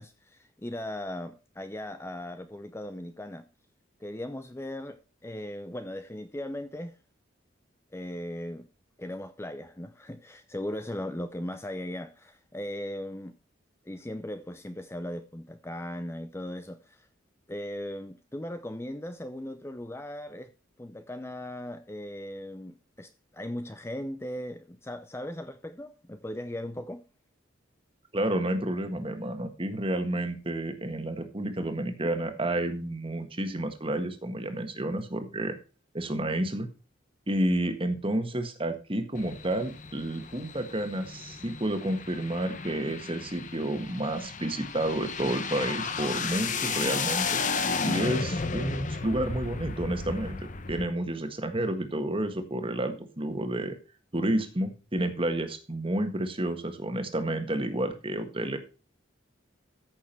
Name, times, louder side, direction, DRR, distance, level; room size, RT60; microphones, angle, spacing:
voice 1, 0.0-3.4 4.0-7.0 7.9-8.7 9.0-13.3 13.9-17.1 17.5-20.5 20.8-27.0, left 1 dB, 15° left, 0.5 m, -38 dB
voice 2, 28.1-35.5 35.9-36.7 37.3-47.4 47.8-50.4 50.7-53.7 54.1-58.6, right 1 dB, 25° right, 1.6 m, -30 dB
sound 1, 39.1-50.9, left 4 dB, 40° left, 0.9 m, -33 dB
14.0 x 6.3 x 4.5 m
head